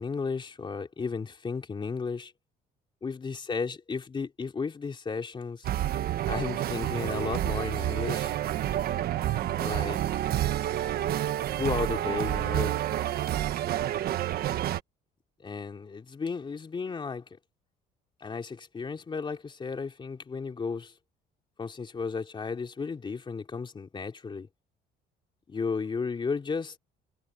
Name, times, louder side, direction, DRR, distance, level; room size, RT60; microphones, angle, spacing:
voice 1, 0.0-2.3 3.0-5.7 6.3-8.3 9.6-10.0 11.6-12.8 15.4-17.2 18.2-20.9 21.6-24.5 25.5-26.7, left 5 dB, 30° left, 3.2 m, -34 dB
sound 1, 5.6-14.8, right 12 dB, 65° right, 1.3 m, -29 dB
cardioid pair, 110°, 17 cm